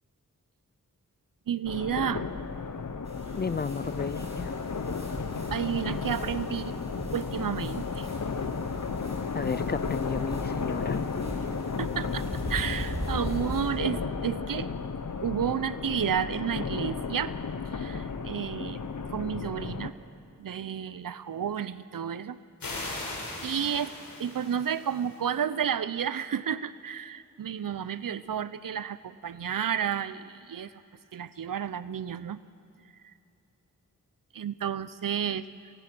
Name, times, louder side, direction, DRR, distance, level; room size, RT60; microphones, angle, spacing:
voice 1, 1.5-2.3 5.5-6.7 7.1-8.1 11.8-14.7 15.2-17.3 17.7-18.8 19.1-19.9 20.4-22.4 23.4-23.9 24.2-30.7 31.1-32.4 34.3-35.4, right 8 dB, 75° right, 16 dB, 0.7 m, -31 dB
sound 1, 1.6-19.9, left 5 dB, 60° left, 1.2 m, -33 dB
sound 2, 3.1-13.7, equal, 20° right, 7.0 m, -40 dB
voice 2, 3.4-4.5 9.3-11.0, left 5 dB, 30° left, 20 dB, 0.4 m, -33 dB
sound 3, 22.6-25.2, left 2 dB, 85° left, 4.7 m, -39 dB
24.0 x 18.5 x 6.1 m, 2.7 s
cardioid pair, 40°, 33 cm